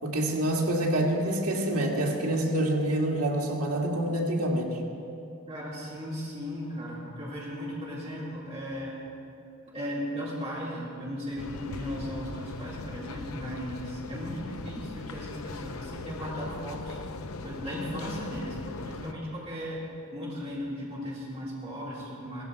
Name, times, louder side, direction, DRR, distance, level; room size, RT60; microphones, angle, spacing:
voice 1, 0.0-4.8, right 1 dB, 90° right, -1 dB, 2.2 m, -27 dB
voice 2, 5.5-9.0 9.7-17.0 17.4-19.8 20.1-22.4, equal, 30° right, -7 dB, 3.5 m, -36 dB
sound 1, 11.4-19.1, left 3 dB, 75° left, 0.7 m, -40 dB
17.0 x 15.5 x 4.8 m, 2.7 s
head